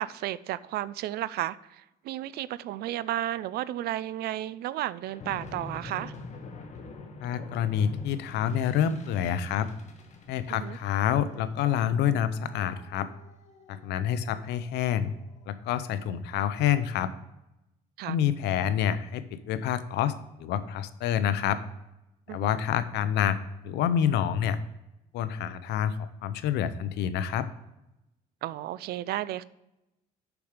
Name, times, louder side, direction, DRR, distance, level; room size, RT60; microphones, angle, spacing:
voice 1, 0.0-6.1 10.5-10.8 18.0-18.2 22.3-22.6 28.4-29.4, right 13 dB, 70° right, 0.4 m, -33 dB
sound 1, 5.0-15.6, left 3 dB, 45° left, 1.4 m, -46 dB
voice 2, 7.2-9.7 10.3-13.1 13.7-15.1 15.5-17.1 18.1-20.1 20.4-21.6 22.3-23.4 23.6-24.6 25.1-27.5, left 9 dB, 80° left, 0.7 m, -27 dB
6.9 x 6.0 x 4.9 m
cardioid pair, 110°, 17 cm